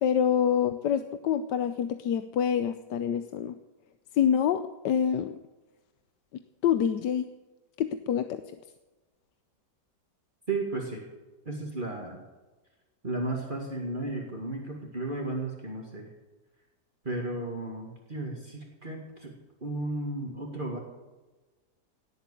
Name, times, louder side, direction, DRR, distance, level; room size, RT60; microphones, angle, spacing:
voice 1, 0.0-3.6 4.1-5.3 6.3-7.3 7.8-8.4, left 8 dB, 85° left, 10 dB, 1.4 m, -26 dB
voice 2, 10.5-11.1 11.5-12.2 13.0-16.1 17.0-19.3 19.6-20.8, right 2 dB, 30° right, -1 dB, 2.3 m, -34 dB
18.0 x 8.3 x 8.5 m, 1.2 s
omnidirectional pair, 1.8 m